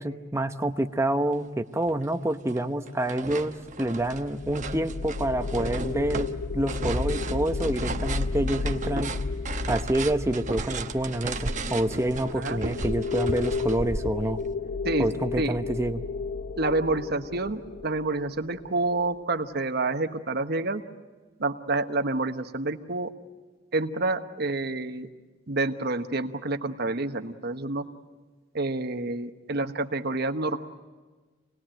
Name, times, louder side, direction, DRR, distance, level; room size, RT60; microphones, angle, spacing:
voice 1, 0.0-6.3 6.5-9.1 9.7-14.4 15.0-16.0, right 1 dB, 15° right, 8 dB, 0.9 m, -27 dB
Walking Downstairs, 1.4-1.5 1.9-2.6 2.9-14.5, right 3 dB, 40° right, 1.0 m, -35 dB
sound 1, 3.7-18.9, left 4 dB, 65° left, 0.7 m, -33 dB
voice 2, 16.6-20.8 21.4-23.1 23.7-25.1 25.5-27.8 28.5-30.6, right 2 dB, 55° right, 8 dB, 1.2 m, -28 dB
26.5 x 19.5 x 9.0 m, 1.3 s
head